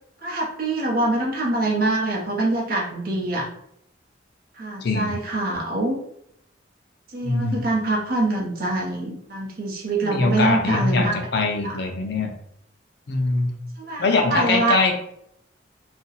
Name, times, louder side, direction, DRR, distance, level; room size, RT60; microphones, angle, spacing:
voice 1, 0.2-3.5 4.5-6.0 7.1-11.2 11.6-11.8 13.8-14.8, right 2 dB, 50° right, -2 dB, 0.8 m, -24 dB
voice 2, 4.8-5.2 7.2-7.7 10.0-12.3 13.1-13.5 14.0-15.0, left 3 dB, 60° left, 4 dB, 0.5 m, -22 dB
2.6 x 2.2 x 3.9 m, 0.74 s
head